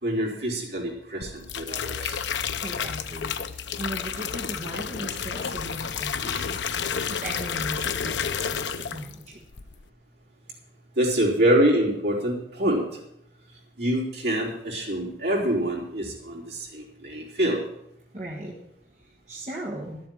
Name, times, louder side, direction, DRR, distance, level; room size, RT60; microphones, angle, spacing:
voice 1, 0.0-2.2 11.0-12.8 13.8-17.6, right 1 dB, 65° right, -3 dB, 4.2 m, -25 dB
sound 1, 1.2-9.2 9.5-9.9, left 7 dB, 80° left, 0.7 m, -31 dB
voice 2, 2.6-6.6 7.1-9.4 18.1-18.5 19.0-20.0, right 1 dB, 40° right, -2 dB, 1.6 m, -37 dB
12.0 x 7.8 x 7.8 m, 0.79 s
head